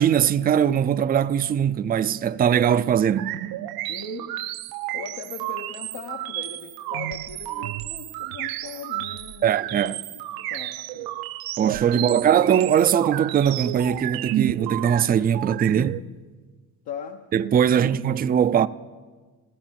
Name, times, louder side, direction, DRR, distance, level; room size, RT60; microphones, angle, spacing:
voice 1, 0.0-3.4 9.4-10.0 11.6-16.0 17.3-18.7, right 9 dB, 25° right, 0.4 m, -21 dB
sound 1, 3.2-16.0, right 16 dB, 70° right, 0.6 m, -32 dB
voice 2, 3.9-4.3 4.9-11.1 11.9-12.2 16.8-17.3 17.6-18.2, left 8 dB, 80° left, 1.1 m, -40 dB
14.5 x 13.5 x 7.5 m
cardioid pair, 115°, 37 cm